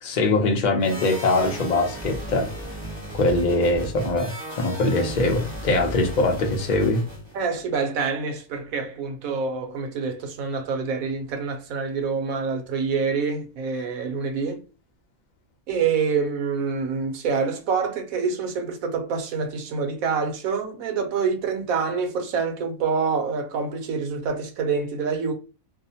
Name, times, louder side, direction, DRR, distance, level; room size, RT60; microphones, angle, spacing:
voice 1, 0.0-2.5 3.1-7.1, left 2 dB, 80° left, 0.4 m, -22 dB
sound 1, 0.8-7.4, right 1 dB, 20° right, 0.7 m, -35 dB
voice 2, 7.3-14.6 15.7-25.3, right 5 dB, 70° right, 1.0 m, -26 dB
2.7 x 2.0 x 2.6 m
omnidirectional pair, 1.6 m